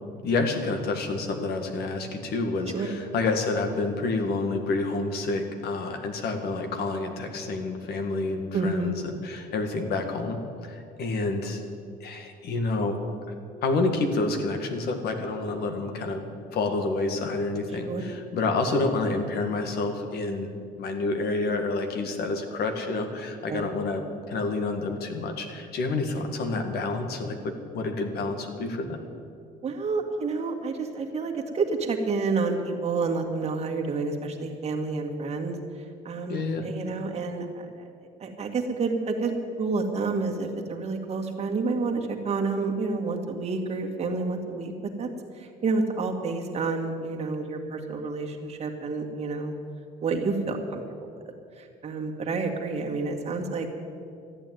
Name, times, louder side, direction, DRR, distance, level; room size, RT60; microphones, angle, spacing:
voice 1, 0.1-11.6 12.0-13.0 13.6-16.2 16.5-20.5 20.8-24.0 24.3-29.0 36.3-36.7, left 3 dB, 70° left, 5 dB, 1.9 m, -28 dB
voice 2, 8.5-8.9 17.9-18.1 23.5-23.6 26.2-26.3 29.6-35.6 36.0-37.9 38.2-44.7 45.0-45.1 45.4-49.5 50.0-50.8 51.6-53.7, right 3 dB, 40° right, 1 dB, 2.0 m, -29 dB
13.5 x 8.9 x 9.3 m, 2.4 s
cardioid pair, 110°, 17 cm